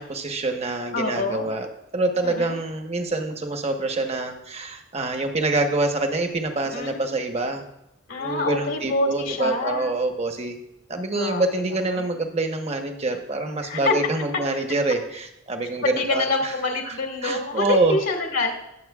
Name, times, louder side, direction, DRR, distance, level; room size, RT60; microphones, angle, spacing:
voice 1, 0.0-1.7 1.9-7.6 8.2-10.6 10.9-16.5 16.8-17.0 17.2-18.0, right 2 dB, 30° right, 5 dB, 1.1 m, -26 dB
voice 2, 0.9-1.5 2.2-2.6 6.7-7.0 8.1-9.9 11.2-12.1 13.6-13.9 15.9-18.5, left 2 dB, 65° left, 1 dB, 1.7 m, -26 dB
20.5 x 7.5 x 2.4 m, 0.86 s
head